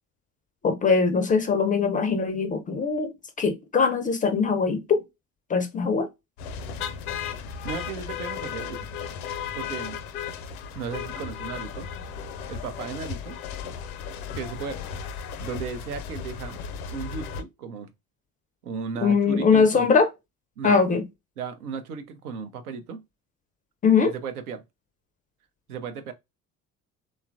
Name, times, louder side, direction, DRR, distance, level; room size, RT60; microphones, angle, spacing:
voice 1, 0.6-3.1 3.4-5.0 5.5-6.1 19.0-20.1 20.6-21.0 23.8-24.1, left 5 dB, 20° left, 0.4 m, -21 dB
sound 1, 6.4-17.4, left 7 dB, 75° left, 0.5 m, -35 dB
voice 2, 7.6-9.0 9.5-10.0 10.8-11.9 12.5-13.4 14.3-14.8 15.4-16.6 16.9-17.9 18.6-19.9 20.6-20.8 21.4-23.0 24.1-24.6 25.7-26.1, right 6 dB, 80° right, 0.5 m, -35 dB
3.0 x 2.2 x 2.5 m
figure-of-eight pair, 55°, 44 cm